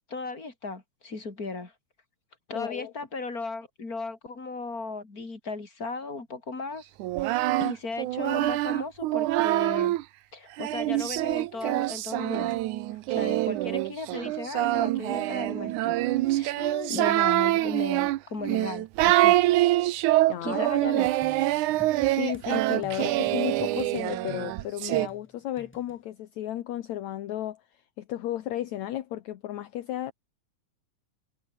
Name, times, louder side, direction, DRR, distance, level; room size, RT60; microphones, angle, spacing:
voice 1, 0.1-1.7 2.5-6.9 7.2-10.0 10.3-12.6 13.1-16.0 16.3-16.6 16.9-19.4 20.4-21.1, left 3 dB, 25° left, 4.7 m, -36 dB
voice 2, 2.5-2.9 16.6-17.1 20.3-21.0 22.2-30.1, left 13 dB, 70° left, 2.4 m, -34 dB
Singing, 7.0-10.0 10.6-25.1, right 16 dB, 80° right, 2.2 m, -25 dB
sound 1, 21.0-22.5 22.8-26.0, equal, 5° left, 6.8 m, -49 dB
omnidirectional pair, 3.5 m